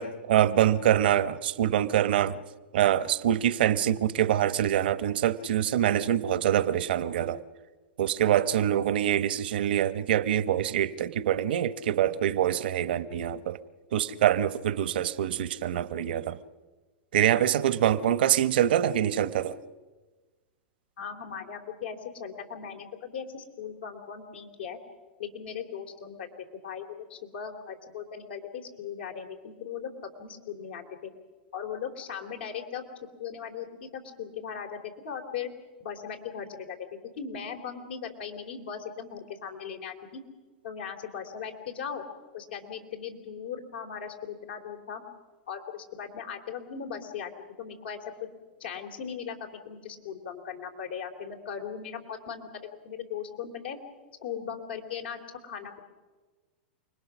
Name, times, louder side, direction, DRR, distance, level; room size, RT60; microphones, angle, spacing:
voice 1, 0.0-2.4 2.7-7.4 8.0-13.6 13.9-16.4 17.1-19.6, right 11 dB, 75° right, 1.0 m, -25 dB
voice 2, 21.0-24.8 25.2-26.3 26.6-29.9 30.2-31.1 31.5-32.8 33.2-34.8 35.0-35.5 35.8-36.8 37.2-40.2 40.6-42.0 42.3-45.0 45.5-47.3 47.6-48.0 48.6-49.4 49.6-52.5 52.8-53.8 54.2-55.8, left 7 dB, 80° left, 3.2 m, -38 dB
29.0 x 20.0 x 6.2 m
hypercardioid pair, 115°, 5 cm